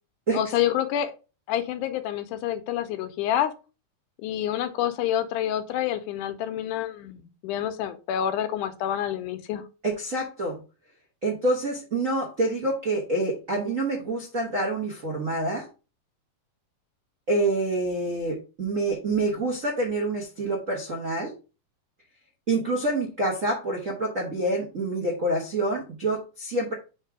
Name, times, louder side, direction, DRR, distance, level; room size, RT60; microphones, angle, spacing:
voice 1, 0.3-1.1 1.5-3.5 4.2-9.6, left 11 dB, 80° left, 10 dB, 2.1 m, -28 dB
voice 2, 9.8-10.6 11.2-15.7 17.3-21.3 22.5-26.7, right 2 dB, 60° right, -3 dB, 0.8 m, -27 dB
7.4 x 3.1 x 4.7 m, 0.32 s
omnidirectional pair, 3.7 m